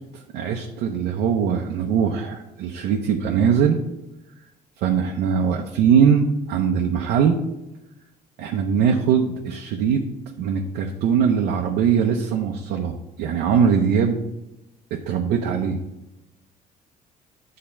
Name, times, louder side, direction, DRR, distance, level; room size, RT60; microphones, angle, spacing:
voice 1, 0.3-3.8 4.8-7.4 8.4-10.0 10.4-14.2 14.9-15.8, right 7 dB, 90° right, 1 dB, 0.8 m, -21 dB
8.9 x 3.8 x 5.7 m, 0.94 s
cardioid pair, 110°, 17 cm